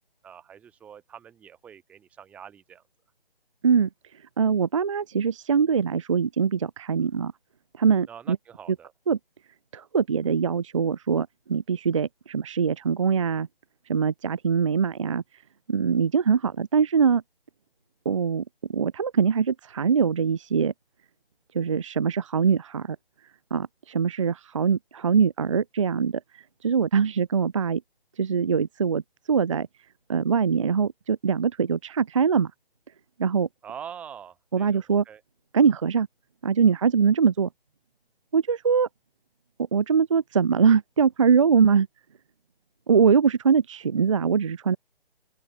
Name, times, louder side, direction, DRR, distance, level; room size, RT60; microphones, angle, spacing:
voice 1, 0.2-2.8 8.1-8.9 33.6-35.2, right 8 dB, 5° right, 0.9 m, -44 dB
voice 2, 4.4-7.3 7.8-8.4 9.1-9.2 9.7-13.5 13.9-15.2 15.7-17.2 18.1-18.4 18.7-20.7 21.5-23.0 23.5-26.2 26.6-27.8 28.2-29.0 29.3-29.7 30.1-32.5 33.2-33.5 34.5-35.0 35.5-36.1 36.4-37.5 38.3-38.9 39.7-41.9 42.9-44.8, right 6 dB, 35° right, 0.5 m, -22 dB
open air
figure-of-eight pair, 150°, 30 cm